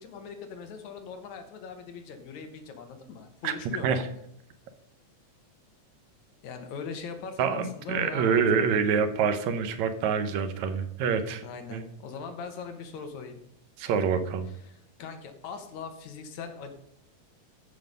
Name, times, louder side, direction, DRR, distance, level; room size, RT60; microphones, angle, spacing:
voice 1, 0.0-4.1 6.4-9.0 11.4-13.4 14.5-16.7, left 5 dB, 75° left, 6 dB, 2.6 m, -41 dB
voice 2, 7.4-11.4 11.7-11.8 13.8-14.5, right 6 dB, 75° right, 9 dB, 2.2 m, -26 dB
13.5 x 5.8 x 5.3 m, 0.74 s
omnidirectional pair, 3.3 m